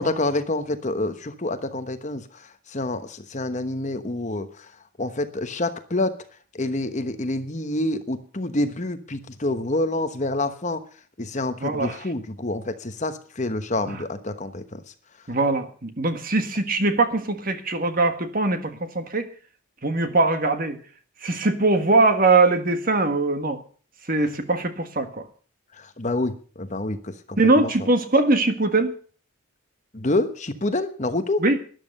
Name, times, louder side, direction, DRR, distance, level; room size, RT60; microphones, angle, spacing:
voice 1, 0.0-4.7 5.0-6.2 6.5-10.8 11.2-14.8 25.7-27.9 29.9-31.4, left 2 dB, 35° left, 9 dB, 1.1 m, -27 dB
voice 2, 11.6-12.0 15.3-19.3 19.8-20.8 21.2-23.6 24.1-25.2 27.4-29.0 31.4-31.6, right 2 dB, 40° right, 8 dB, 1.6 m, -21 dB
13.0 x 11.0 x 6.6 m, 0.42 s
head